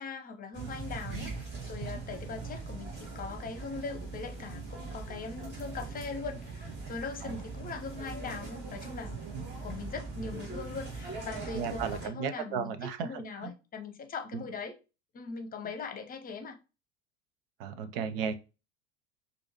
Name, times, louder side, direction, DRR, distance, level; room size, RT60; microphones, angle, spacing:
voice 1, 0.0-9.1 9.6-14.7 15.1-16.6, left 4 dB, 25° left, 0.9 m, -41 dB
sound 1, 0.5-12.1, right 4 dB, 30° right, 1.9 m, -41 dB
voice 2, 11.5-13.5 14.3-14.4 17.6-18.3, right 7 dB, 55° right, 0.6 m, -35 dB
6.2 x 2.7 x 2.9 m
figure-of-eight pair, 75°, 35 cm